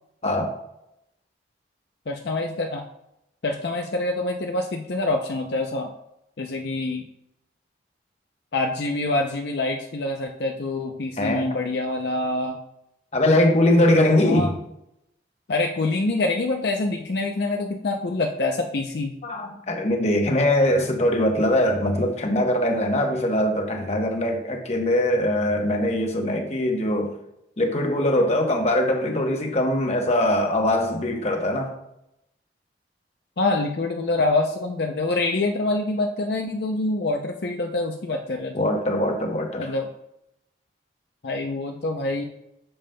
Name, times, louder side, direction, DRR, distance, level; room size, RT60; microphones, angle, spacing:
voice 1, 0.2-0.5 11.2-11.5 13.1-14.6 19.2-27.1 27.6-31.7 38.5-39.7, left 1 dB, 35° left, 3 dB, 0.9 m, -22 dB
voice 2, 2.1-2.8 3.4-5.9 6.4-7.0 8.5-12.6 14.3-14.5 15.5-19.2 33.4-38.7 39.6-39.9 41.2-42.3, left 2 dB, 60° left, 2 dB, 0.5 m, -26 dB
8.7 x 6.9 x 2.2 m, 0.83 s
head